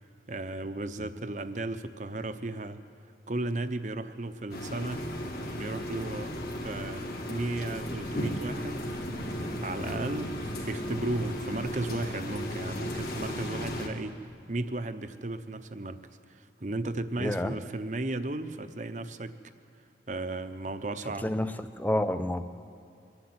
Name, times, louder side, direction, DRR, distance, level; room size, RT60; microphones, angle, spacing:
voice 1, 0.3-2.8 3.3-5.1 5.6-6.3 6.6-8.9 9.6-14.2 14.5-19.4 20.1-21.3, right 2 dB, 45° right, 10 dB, 0.8 m, -35 dB
sound 1, 4.5-13.9, equal, 60° left, 2.4 m, -35 dB
voice 2, 17.2-17.6 21.2-22.4, left 1 dB, 10° left, 10 dB, 0.6 m, -29 dB
23.5 x 12.0 x 9.5 m, 2.6 s
head